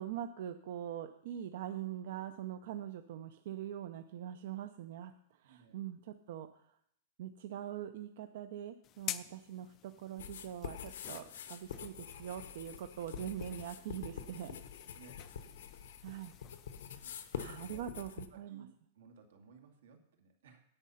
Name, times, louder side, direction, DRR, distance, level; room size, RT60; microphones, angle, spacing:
voice 1, 0.0-5.1 5.4-6.5 7.2-14.6 16.0-16.3 17.0-18.7, right 10 dB, 55° right, 9 dB, 0.5 m, -43 dB
voice 2, 5.4-5.8 14.9-15.2 17.0-17.8 18.3-18.7 18.9-20.6, right 6 dB, 80° right, 5 dB, 2.1 m, -60 dB
sound 1, 8.8-17.8, left 12 dB, 25° left, 0.4 m, -50 dB
sound 2, 10.2-18.3, left 8 dB, 80° left, 1.0 m, -46 dB
10.0 x 8.4 x 5.6 m, 0.72 s
supercardioid pair, 175°, 0 cm